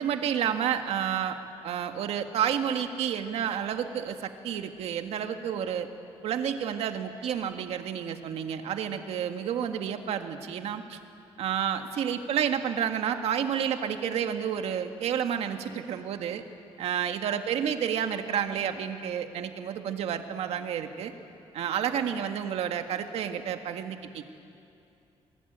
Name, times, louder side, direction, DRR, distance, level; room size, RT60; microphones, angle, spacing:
voice 1, 0.0-1.4 1.6-5.9 6.2-11.0 11.4-16.4 16.8-21.1 21.5-24.2, right 8 dB, 80° right, 6 dB, 1.7 m, -30 dB
26.5 x 21.5 x 8.8 m, 2.6 s
cardioid pair, 170°, 10 cm